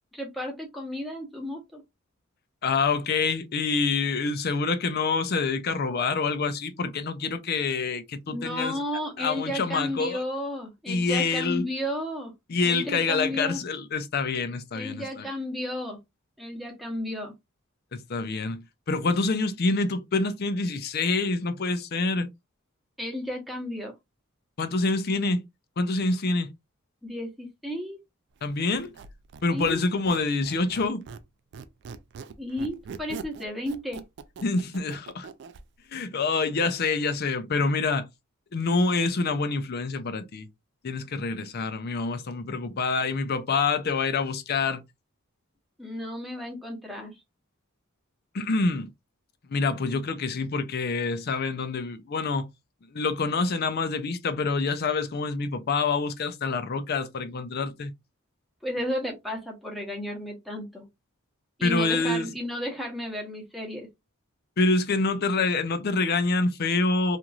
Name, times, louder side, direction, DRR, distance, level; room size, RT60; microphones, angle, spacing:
voice 1, 0.1-1.8 8.3-12.3 12.6-13.6 14.7-16.0 16.4-17.3 23.0-23.9 27.0-28.0 29.5-29.8 32.4-34.0 45.8-47.2 58.6-60.9 61.6-63.9, left 1 dB, ahead, 0.9 m, -33 dB
voice 2, 2.6-8.8 9.2-10.2 10.9-11.6 12.5-15.3 17.9-18.6 18.9-22.3 24.6-25.4 25.8-26.5 28.4-28.9 29.4-31.1 34.4-35.3 35.9-38.1 38.5-40.5 40.8-44.8 48.3-48.9 49.5-52.5 52.9-57.9 61.6-62.3 64.6-67.2, left 3 dB, 45° left, 0.5 m, -26 dB
Squeak, 28.7-31.3 31.5-35.6, right 5 dB, 55° right, 0.3 m, -42 dB
3.0 x 2.5 x 2.4 m
head